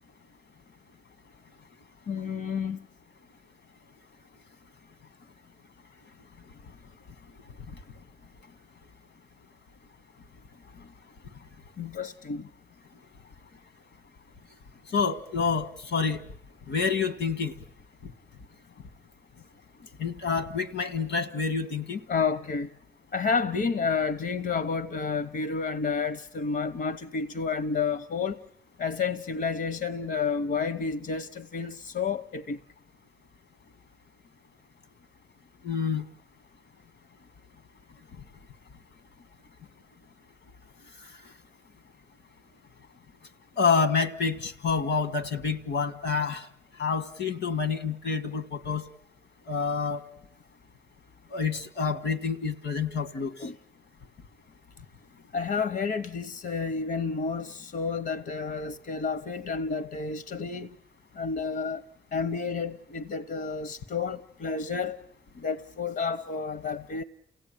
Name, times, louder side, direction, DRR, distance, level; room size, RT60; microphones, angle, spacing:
voice 1, 2.1-2.8 11.8-12.5 22.1-22.7 23.1-28.4 28.8-32.6 53.4-53.6 55.3-60.8 61.2-61.8 62.1-65.0 65.4-67.0, left 5 dB, 65° left, 0.9 m, -30 dB
voice 2, 14.9-16.2 16.7-17.5 18.0-18.1 20.0-22.0 35.6-36.1 40.9-41.3 43.6-46.5 46.8-48.8 49.5-50.1 51.3-53.5, left 5 dB, 80° left, 1.5 m, -28 dB
29.0 x 17.0 x 9.0 m
supercardioid pair, 45°, 18 cm